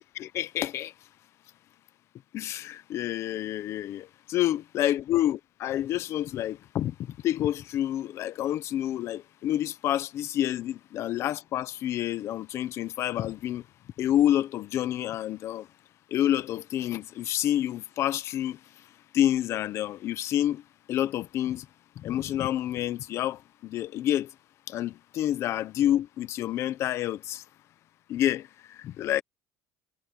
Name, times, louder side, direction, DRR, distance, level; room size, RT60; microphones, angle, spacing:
voice 1, 0.1-0.9 2.3-13.6 14.0-15.7 16.1-18.6 19.1-20.6 20.9-21.7 22.0-24.3 24.7-27.4 28.1-29.2, left 12 dB, 45° left, 0.9 m, -28 dB
cardioid pair, 160°, 7 cm